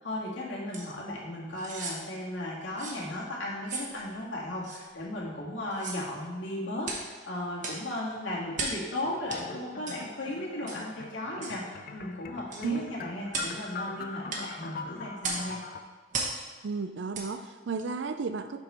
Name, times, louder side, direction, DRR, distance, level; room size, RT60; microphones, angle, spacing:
voice 1, 0.0-15.6, left 1 dB, 85° left, -4 dB, 1.8 m, -36 dB
sound 1, 0.7-0.9 1.5-2.0 2.8-3.0 3.7-3.9 4.6-4.8 5.7-6.1 6.8-7.1 7.6-7.9 8.5-8.8 9.3-9.4 9.9-10.0 10.7-10.8 11.4-11.6 12.5-12.7 13.3-13.6 14.3-14.5 15.2-15.5 16.1-16.4 17.1-17.3 17.8-17.9, right 3 dB, 45° right, 1.0 m, -35 dB
sound 2, 9.0-15.8, left 4 dB, 50° left, 0.5 m, -43 dB
voice 2, 16.6-18.6, right 5 dB, 70° right, 10 dB, 0.4 m, -33 dB
6.1 x 5.3 x 4.3 m, 1.5 s
head